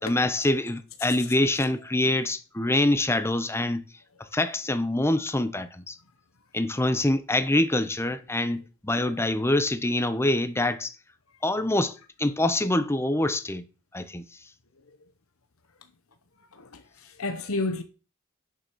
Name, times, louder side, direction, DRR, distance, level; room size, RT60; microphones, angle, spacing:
voice 1, 0.0-3.9 4.3-6.0 6.5-10.9 11.4-13.6 13.9-14.2, left 1 dB, 10° left, 0.9 m, -25 dB
voice 2, 16.5-17.8, left 2 dB, 80° left, 1.1 m, -32 dB
9.8 x 6.7 x 6.2 m
head